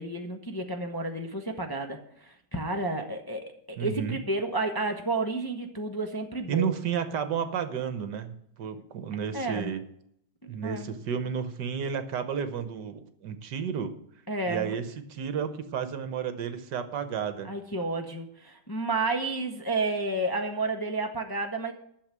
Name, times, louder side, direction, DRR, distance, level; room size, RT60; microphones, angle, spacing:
voice 1, 0.0-6.7 9.3-9.7 10.4-10.9 14.3-14.7 17.4-21.7, right 2 dB, 15° left, 3 dB, 0.8 m, -31 dB
voice 2, 3.8-4.2 6.5-9.8 10.5-13.9 14.5-17.5, right 7 dB, 75° right, 10 dB, 1.6 m, -32 dB
11.5 x 6.8 x 7.4 m, 0.71 s
omnidirectional pair, 1.9 m